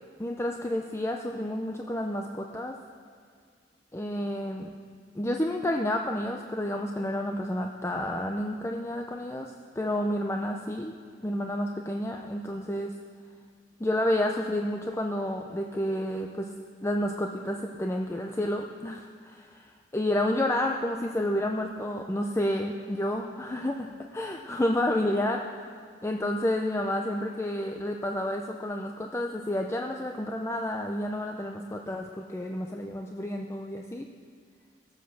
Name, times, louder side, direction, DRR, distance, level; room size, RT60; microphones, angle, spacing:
voice 1, 0.2-2.8 3.9-4.7 5.2-10.9 11.2-13.0 13.8-16.5 16.8-25.7 26.0-34.1, left 1 dB, 15° left, 2 dB, 0.6 m, -30 dB
17.5 x 7.6 x 6.9 m, 2.1 s
head